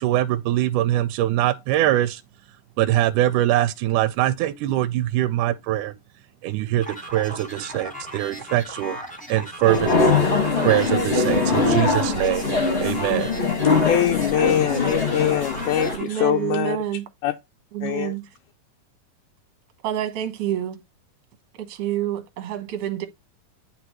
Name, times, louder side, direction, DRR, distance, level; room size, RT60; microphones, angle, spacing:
voice 1, 0.0-2.2 2.8-5.9 6.4-9.0 9.3-9.9 10.6-12.5 12.8-13.3, right 14 dB, 80° right, 2.0 m, -22 dB
sound 1, 6.8-16.5, equal, 5° left, 0.5 m, -37 dB
sound 2, 9.6-16.0, left 3 dB, 25° left, 1.5 m, -22 dB
voice 2, 13.8-16.8 17.2-17.3 17.8-18.2, left 10 dB, 80° left, 2.0 m, -23 dB
voice 3, 15.9-17.0 17.7-18.2 19.8-20.8 21.6-23.1, right 11 dB, 60° right, 1.8 m, -28 dB
9.6 x 3.9 x 3.0 m
omnidirectional pair, 3.9 m